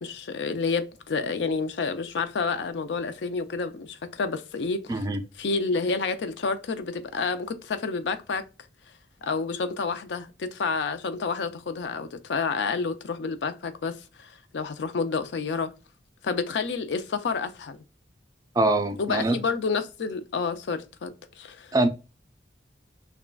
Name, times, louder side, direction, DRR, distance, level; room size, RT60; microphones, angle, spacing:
voice 1, 0.0-5.1 5.4-8.4 9.2-15.7 16.2-17.8 19.0-21.8, left 4 dB, 80° left, 0.4 m, -29 dB
voice 2, 4.9-5.2 18.6-19.4 21.7-21.9, right 2 dB, 20° right, 0.3 m, -23 dB
3.6 x 2.1 x 2.3 m
head